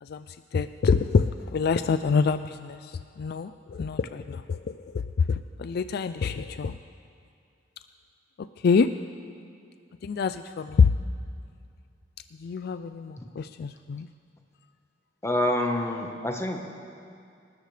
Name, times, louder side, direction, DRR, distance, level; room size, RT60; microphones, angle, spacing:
voice 1, 0.0-6.8 8.4-8.9 10.0-10.9 12.4-14.1, left 5 dB, 55° left, 11 dB, 0.3 m, -26 dB
voice 2, 15.2-16.7, left 1 dB, 15° left, 3 dB, 1.2 m, -27 dB
25.5 x 13.0 x 3.3 m, 2.3 s
head